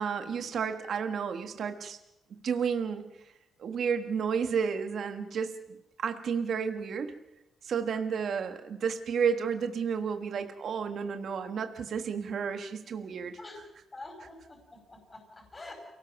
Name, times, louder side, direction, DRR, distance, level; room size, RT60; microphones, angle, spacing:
voice 1, 0.0-2.0 2.4-3.0 3.6-5.5 6.0-7.1 7.6-13.7 14.2-14.3, right 6 dB, 55° right, 7 dB, 1.4 m, -31 dB
voice 2, 13.4-15.7, left 2 dB, 20° left, 3 dB, 5.1 m, -47 dB
29.0 x 18.5 x 5.9 m, 0.89 s
cardioid pair, 150°, 0 cm